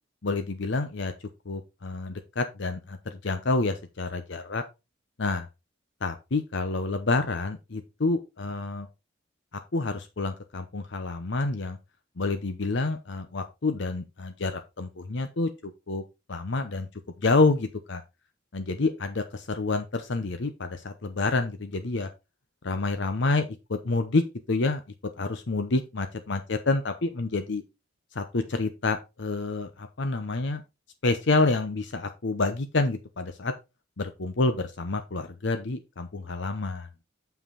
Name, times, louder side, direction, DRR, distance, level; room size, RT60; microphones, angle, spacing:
voice 1, 0.2-1.1 1.5-4.6 5.2-5.5 6.0-8.9 9.7-11.8 12.2-16.0 16.3-16.9 17.2-18.0 18.5-22.1 22.6-24.8 25.2-27.6 28.1-30.6 31.0-33.5 34.0-36.9, left 3 dB, 65° left, 8 dB, 0.8 m, -28 dB
7.2 x 5.9 x 4.1 m, 0.25 s
head